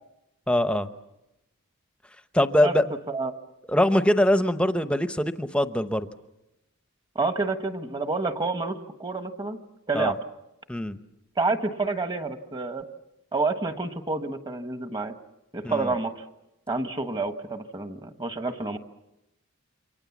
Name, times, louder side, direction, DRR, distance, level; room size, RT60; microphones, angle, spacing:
voice 1, 0.5-0.9 2.3-3.0 3.7-6.1 9.9-10.1 10.7-11.0 15.6-15.9, left 1 dB, 5° left, 10 dB, 0.8 m, -23 dB
voice 2, 7.1-9.6 9.9-10.2 11.4-12.8 13.3-15.1 15.5-16.2 16.7-18.8, right 3 dB, 20° right, 8 dB, 1.3 m, -28 dB
28.5 x 24.5 x 7.2 m, 0.93 s
head